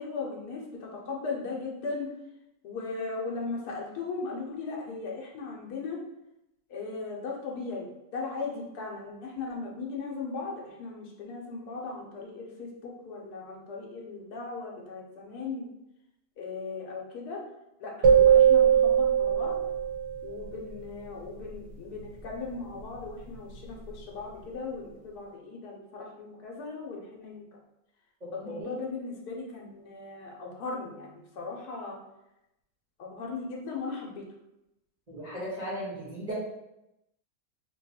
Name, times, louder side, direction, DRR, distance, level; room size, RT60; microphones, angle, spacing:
voice 1, 0.0-2.1 2.6-6.0 6.7-15.7 16.4-17.4 17.8-19.6 20.2-27.6 28.3-32.0 33.0-34.2, left 4 dB, 85° left, -1 dB, 1.2 m, -38 dB
sound 1, 18.0-20.3, right 8 dB, 85° right, 1.2 m, -20 dB
voice 2, 28.2-28.7 35.1-36.3, equal, 35° right, -10 dB, 0.9 m, -37 dB
3.0 x 2.3 x 4.0 m, 0.89 s
omnidirectional pair, 1.7 m